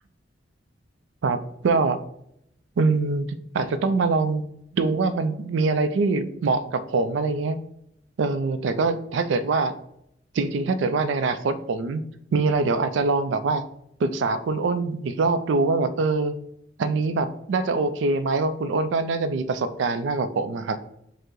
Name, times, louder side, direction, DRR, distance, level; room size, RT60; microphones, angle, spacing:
voice 1, 1.2-2.0 2.8-4.4 4.7-7.6 8.2-9.7 10.3-12.0 12.3-13.6 14.0-16.4 16.8-20.8, right 3 dB, 75° right, 11 dB, 0.4 m, -24 dB
5.2 x 2.0 x 3.8 m, 0.75 s
head